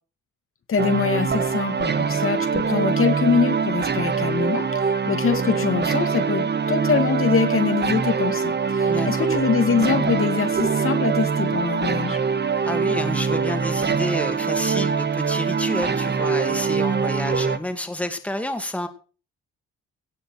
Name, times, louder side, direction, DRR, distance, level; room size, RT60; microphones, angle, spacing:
voice 1, 0.7-12.2, left 6 dB, 45° left, 7 dB, 2.1 m, -24 dB
sound 1, 0.8-17.6, right 5 dB, 35° right, 1.4 m, -23 dB
voice 2, 8.9-9.3 12.6-18.9, left 1 dB, 5° left, 7 dB, 2.4 m, -29 dB
17.5 x 6.6 x 6.5 m, 0.38 s
cardioid pair, 90°, 30 cm